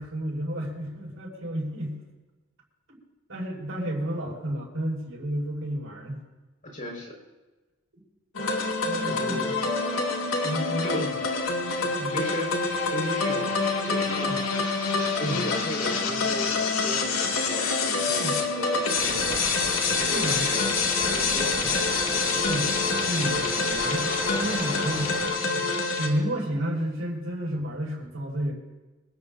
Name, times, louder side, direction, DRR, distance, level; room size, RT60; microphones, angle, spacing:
voice 1, 0.0-2.0 2.9-3.0 3.3-6.2 7.9-8.0 8.4-8.5 8.8-9.5 10.4-11.2 12.0-12.2 14.3-14.4 15.2-15.5 18.2-18.4 20.0-20.5 21.6-21.7 22.5-22.7 23.1-25.7 26.0-28.5, right 1 dB, 75° right, -7 dB, 5.6 m, -31 dB
voice 2, 6.6-7.1 9.0-9.5 10.8-11.0 12.1-12.5 12.9-13.6 13.8-14.4 15.1-19.5 20.0-20.6 20.9-22.4, left 1 dB, 40° left, 0 dB, 4.9 m, -35 dB
sound 1, 8.3-26.1, left 4 dB, 90° left, 2.3 m, -26 dB
sound 2, 18.9-25.3, right 1 dB, 15° right, 6.5 m, -37 dB
25.5 x 17.0 x 2.7 m, 1.2 s
head